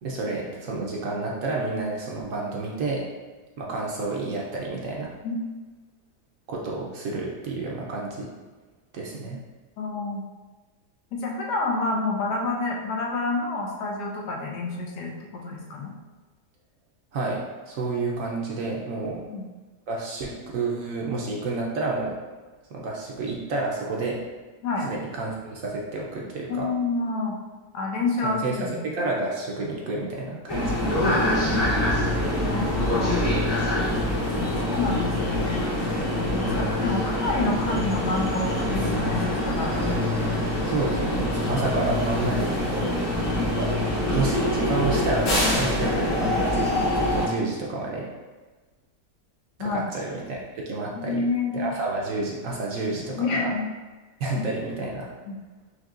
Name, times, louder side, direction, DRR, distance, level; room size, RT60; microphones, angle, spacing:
voice 1, 0.0-3.0 3.6-5.1 6.5-8.3 8.9-9.4 17.1-19.2 19.9-22.2 22.7-24.2 24.8-26.7 28.2-31.3 36.4-36.6 40.6-42.9 43.5-48.1 49.6-51.2 51.5-53.5 54.2-55.1, right 3 dB, 65° right, -2 dB, 0.9 m, -30 dB
voice 2, 9.8-10.2 11.1-15.9 19.3-19.4 24.6-24.9 26.5-27.4 27.7-28.8 30.8-31.9 32.5-33.2 34.3-35.6 36.2-39.7 42.9-43.2 49.6-49.9 50.9-51.7 53.2-53.7 54.4-54.5 55.3-55.4, left 3 dB, 85° left, -1 dB, 1.3 m, -28 dB
sound 1, 30.5-47.3, left 1 dB, 45° left, 0.9 m, -25 dB
5.3 x 2.8 x 2.4 m, 1.3 s
omnidirectional pair, 1.7 m